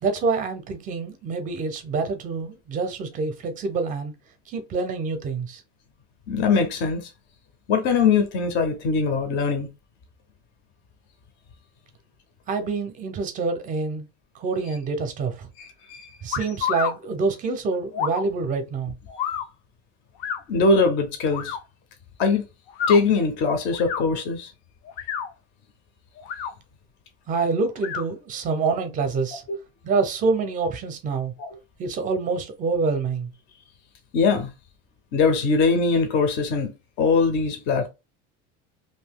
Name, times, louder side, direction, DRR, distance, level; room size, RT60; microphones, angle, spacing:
voice 1, 0.0-4.1 4.5-5.6 12.5-14.0 14.3-15.5 16.2-18.9 27.3-29.4 29.8-31.3 31.8-33.3, right 4 dB, 25° right, 0.6 m, -26 dB
voice 2, 6.3-7.1 7.7-9.7 15.6-16.1 19.1-19.2 20.5-21.6 22.2-22.4 22.9-24.5 31.4-31.5 34.1-34.5 35.1-37.9, left 4 dB, 35° left, 0.6 m, -22 dB
sound 1, 16.3-16.9 17.9-18.2 19.2-19.5 20.2-20.4 21.3-21.6 22.7-23.0 23.7-24.0 24.8-25.3 26.2-26.5 27.8-28.0, left 8 dB, 80° left, 0.7 m, -28 dB
2.7 x 2.7 x 3.4 m
cardioid pair, 180°, 33 cm